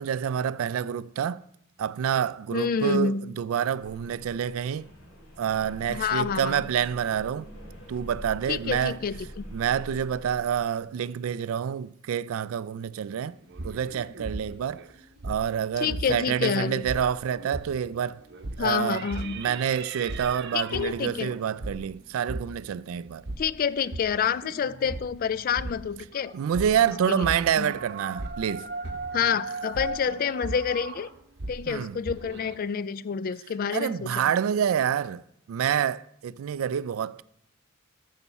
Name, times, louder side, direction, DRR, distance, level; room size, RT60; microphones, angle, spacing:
voice 1, 0.0-1.4 1.8-4.9 5.4-7.5 7.9-9.0 9.5-13.4 13.6-14.9 15.2-18.2 18.6-19.0 19.4-23.2 26.3-28.7 31.7-32.0 33.7-35.2 35.5-37.2, right 8 dB, 80° right, 0.3 m, -27 dB
voice 2, 2.5-3.3 5.9-6.6 8.5-9.5 15.8-16.8 18.6-19.4 20.5-21.3 23.4-26.3 27.1-27.3 27.6-27.7 29.1-31.1 31.5-34.2, left 7 dB, 45° left, 0.3 m, -28 dB
sound 1, 3.8-11.0, equal, 80° left, 3.5 m, -44 dB
sound 2, 13.2-16.4 16.7-32.6, right 2 dB, 55° right, 0.8 m, -38 dB
14.0 x 5.7 x 4.1 m
head